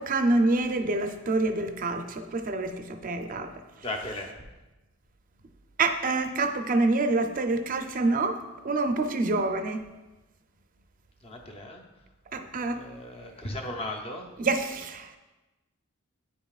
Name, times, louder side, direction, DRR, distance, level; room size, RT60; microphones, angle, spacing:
voice 1, 0.0-3.5 5.8-8.4 8.6-9.8 12.3-12.8 14.4-15.1, right 2 dB, 40° right, 7 dB, 0.5 m, -26 dB
voice 2, 3.8-4.3 11.2-11.8 12.5-14.3, left 1 dB, 30° left, 2 dB, 0.7 m, -36 dB
9.3 x 5.4 x 2.4 m, 1.1 s
head